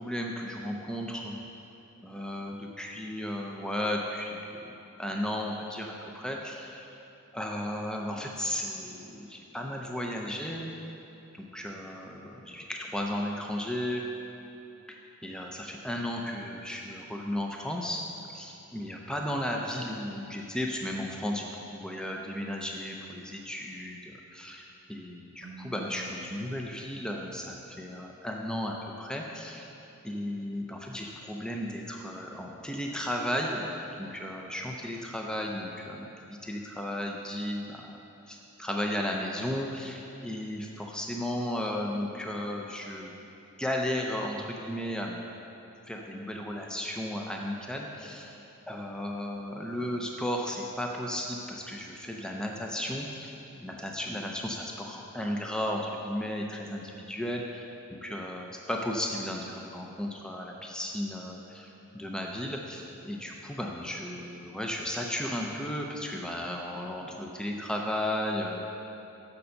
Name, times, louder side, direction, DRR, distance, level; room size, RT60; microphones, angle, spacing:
voice 1, 0.0-1.4 2.0-6.9 7.3-10.7 11.3-14.0 14.9-15.0 15.2-18.0 18.3-24.0 24.3-29.7 30.0-33.7 34.0-38.0 38.3-43.1 43.6-45.2 45.9-48.4 48.7-53.3 53.6-68.6, left 1 dB, 5° left, 0 dB, 0.5 m, -34 dB
Keyboard (musical), 25.4-28.2, right 2 dB, 50° right, 0.7 m, -51 dB
6.9 x 5.4 x 6.5 m, 3.0 s
head